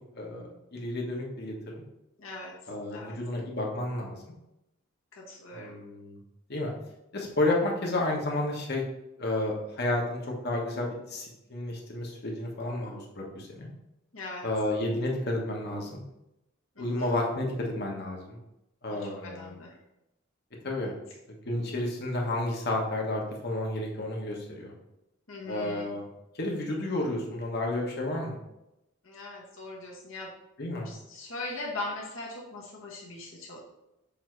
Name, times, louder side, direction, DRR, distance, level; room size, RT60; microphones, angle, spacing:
voice 1, 0.1-1.8 2.7-4.3 5.5-6.2 6.5-6.7 7.1-8.8 9.2-13.7 14.4-16.0 16.8-18.4 18.8-19.6 20.6-20.9 21.3-24.7 25.5-26.1 26.3-28.4 30.6-30.9, left 1 dB, 50° left, -1 dB, 1.3 m, -31 dB
voice 2, 2.2-2.5 2.9-3.2 5.1-5.8 14.1-14.5 16.7-17.1 18.9-19.7 20.6-20.7 25.3-25.9 29.0-30.3 30.8-33.6, left 2 dB, 70° left, -3 dB, 1.5 m, -40 dB
7.1 x 2.9 x 4.6 m, 0.90 s
head